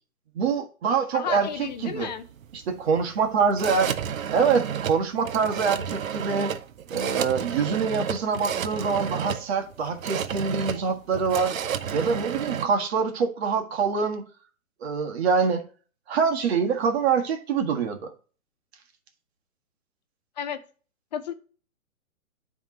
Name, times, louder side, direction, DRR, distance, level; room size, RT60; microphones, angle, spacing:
voice 1, 0.4-2.1 2.5-3.9 4.3-6.5 6.9-11.5 11.9-14.2 14.8-15.6 16.1-18.1, right 5 dB, 50° right, 1.8 m, -25 dB
voice 2, 1.1-2.2 20.4-20.6 21.1-21.3, left 8 dB, 30° left, 0.6 m, -32 dB
sound 1, 1.3-12.7, right 8 dB, 75° right, 0.9 m, -32 dB
9.3 x 3.7 x 5.4 m
hypercardioid pair, 140°, 41 cm